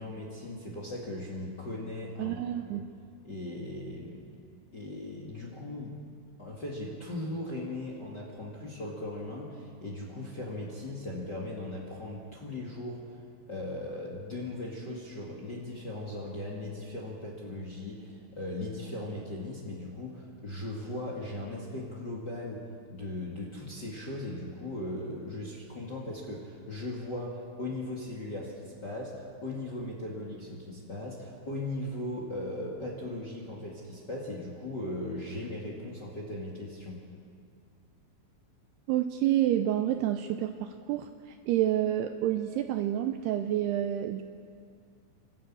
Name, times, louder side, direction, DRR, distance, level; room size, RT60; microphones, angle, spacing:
voice 1, 0.0-2.4 2.7-2.8 3.2-4.3 4.7-6.0 6.4-13.0 13.5-22.6 22.9-37.0, left 1 dB, 35° left, -2 dB, 1.7 m, -38 dB
voice 2, 2.2-2.9 38.9-41.1 41.5-44.2, right 12 dB, 80° right, 7 dB, 2.4 m, -28 dB
26.5 x 13.5 x 8.6 m, 2.4 s
omnidirectional pair, 5.2 m